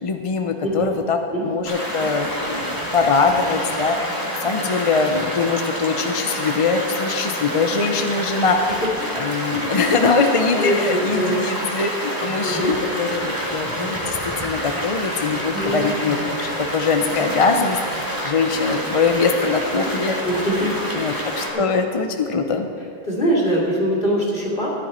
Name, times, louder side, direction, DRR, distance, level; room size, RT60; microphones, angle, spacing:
voice 1, 0.0-1.2 1.4-8.7 9.1-20.2 20.9-22.7, left 4 dB, 40° left, 5 dB, 0.6 m, -22 dB
sound 1, 1.6-21.5, equal, 20° right, 2.2 m, -28 dB
voice 2, 10.6-11.4 12.4-12.8 15.5-15.8 20.2-21.2 21.5-21.6 23.0-24.7, equal, 60° left, -4 dB, 2.8 m, -23 dB
14.5 x 10.0 x 4.3 m, 2.5 s
omnidirectional pair, 1.0 m